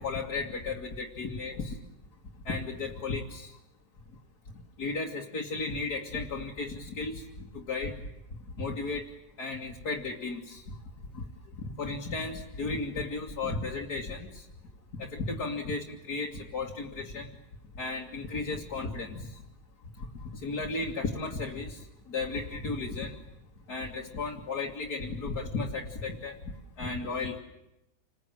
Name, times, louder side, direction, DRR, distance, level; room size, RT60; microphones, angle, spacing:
voice 1, 0.0-1.8 2.5-3.5 4.8-8.0 8.6-9.1 9.4-10.6 11.1-11.2 11.6-14.3 15.0-17.3 17.8-19.3 20.0-20.1 20.4-23.2 23.7-26.4 26.8-27.4, left 3 dB, 55° left, -1 dB, 2.7 m, -34 dB
28.5 x 21.0 x 9.1 m, 0.89 s
omnidirectional pair, 2.1 m